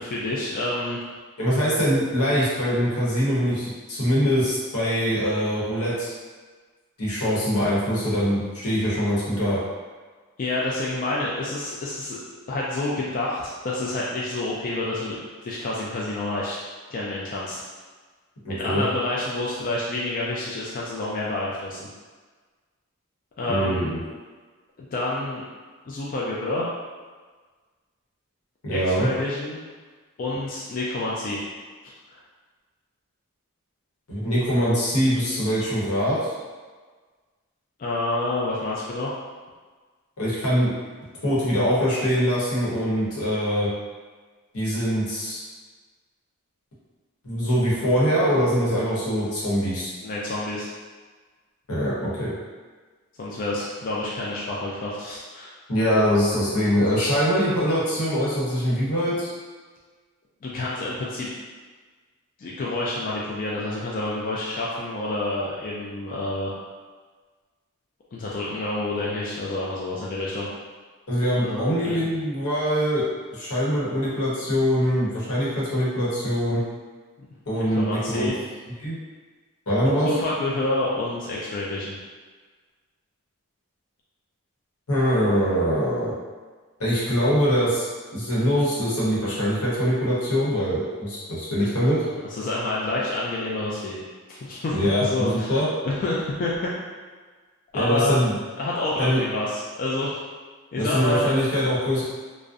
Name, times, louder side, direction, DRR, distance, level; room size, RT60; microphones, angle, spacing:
voice 1, 0.0-1.0 10.4-12.2 12.5-16.6 16.9-17.6 18.5-21.9 23.4-23.9 24.8-25.4 25.9-26.7 28.7-29.6 30.2-31.4 31.8-31.9 37.8-39.1 50.0-50.7 53.2-55.5 56.5-56.7 60.4-61.3 62.4-66.5 68.1-70.5 71.4-72.0 77.2-77.3 77.5-78.3 80.1-82.0 92.3-94.8 95.0-95.5 95.8-96.5 97.7-98.2 98.6-100.2 100.7-101.3, left 2 dB, 40° left, -5 dB, 0.3 m, -28 dB
voice 2, 1.4-6.1 7.0-9.6 18.4-18.8 23.5-24.0 28.6-29.1 34.1-36.3 40.2-40.7 41.2-43.7 44.5-45.4 47.2-49.9 51.7-52.3 55.7-59.3 71.1-73.0 73.3-76.6 77.5-78.3 78.8-79.0 79.7-80.1 84.9-86.1 86.8-87.9 88.1-92.0 94.7-95.7 97.7-98.4 99.0-99.2 100.8-102.0, equal, 85° left, -7 dB, 0.9 m, -23 dB
2.5 x 2.0 x 2.4 m, 1.4 s
head